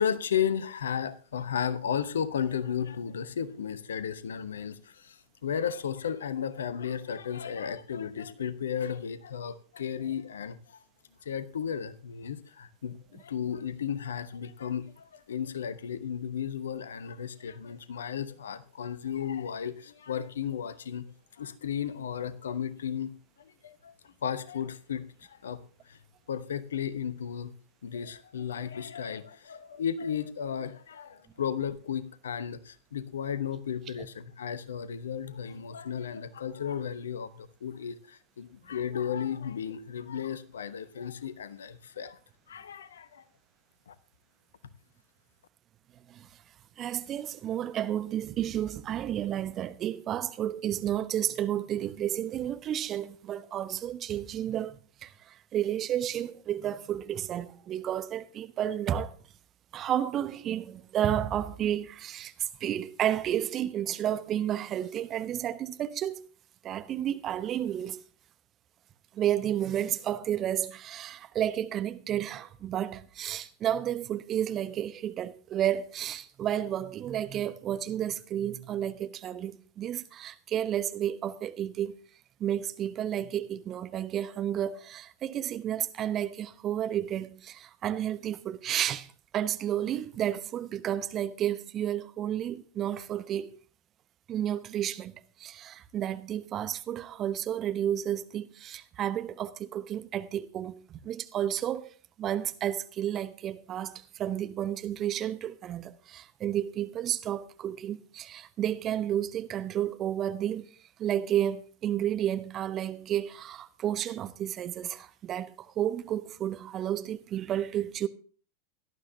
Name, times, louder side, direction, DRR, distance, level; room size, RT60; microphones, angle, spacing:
voice 1, 0.0-10.8 11.2-21.0 21.3-23.1 23.4-25.6 25.8-26.0 26.3-27.5 27.8-42.2 42.5-43.2 43.9-44.0, left 8 dB, 65° left, 0.9 m, -34 dB
voice 2, 46.8-59.1 59.7-66.3 66.6-68.0 69.1-82.0 82.4-89.1 89.3-93.6 94.3-95.1 95.4-101.9 102.2-110.7 111.0-118.1, right 11 dB, 30° right, 0.8 m, -31 dB
17.5 x 12.0 x 2.8 m
figure-of-eight pair, 90°, 0 cm